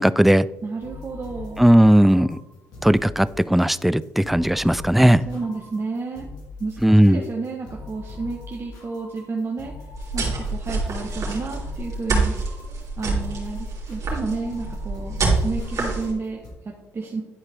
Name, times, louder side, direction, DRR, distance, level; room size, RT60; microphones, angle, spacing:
voice 1, 0.0-0.5 1.6-2.4 2.8-5.3 6.8-7.2, equal, ahead, 17 dB, 0.3 m, -16 dB
voice 2, 0.6-1.7 5.0-6.3 6.6-9.7 10.1-12.3 13.0-17.2, right 3 dB, 40° right, 0 dB, 1.2 m, -31 dB
sound 1, 0.8-16.5, left 3 dB, 75° left, 3.0 m, -41 dB
sound 2, 9.9-16.1, right 3 dB, 55° right, 2.9 m, -26 dB
11.0 x 4.8 x 3.5 m, 1.0 s
supercardioid pair, 65°, 6 cm